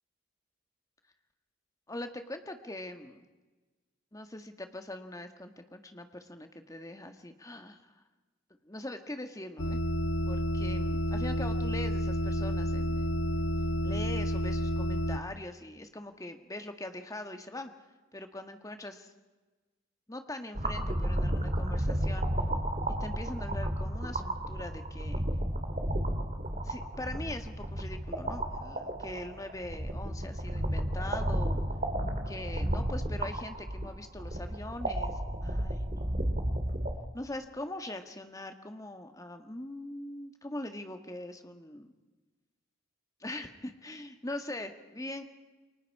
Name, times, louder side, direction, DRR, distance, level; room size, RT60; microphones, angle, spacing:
voice 1, 1.9-3.3 4.1-8.0 8.6-9.8 10.3-13.2 13.8-17.7 18.1-19.1 20.1-22.3 23.0-25.2 26.6-31.6 32.2-36.4 37.1-41.9 43.2-45.2, left 1 dB, 15° left, 7 dB, 1.6 m, -42 dB
sound 1, 9.6-15.2, equal, 65° left, 1.1 m, -30 dB
sound 2, 20.5-36.9, right 1 dB, 35° right, 2.5 m, -32 dB
29.5 x 23.5 x 4.8 m, 1.2 s
head